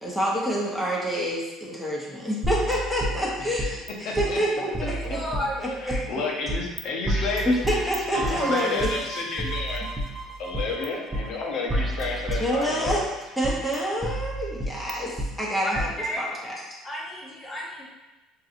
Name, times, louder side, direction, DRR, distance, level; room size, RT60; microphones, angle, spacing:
voice 1, 0.0-5.2 5.6-6.0 7.5-8.9 12.4-13.0 13.4-15.9 16.2-16.7, equal, 5° left, -5 dB, 1.0 m, -27 dB
sound 1, 2.4-3.9 4.2-4.3 4.7-6.0 6.5-6.8 7.1-8.9 9.4-10.9 11.1-11.2 11.7-13.1 13.4-15.3 15.8-15.9, right 1 dB, 15° right, 0.6 m, -30 dB
voice 2, 4.0-4.4 5.8-7.5 8.1-9.9 10.4-13.0, left 3 dB, 65° left, -1 dB, 0.9 m, -30 dB
voice 3, 4.9-6.1 15.6-15.7 16.0-16.3 16.8-17.8, equal, 25° left, -4 dB, 1.3 m, -32 dB
sound 2, 8.1-11.9, right 5 dB, 50° right, 0.8 m, -36 dB
4.6 x 2.9 x 2.6 m, 1.1 s
supercardioid pair, 90°, 0 cm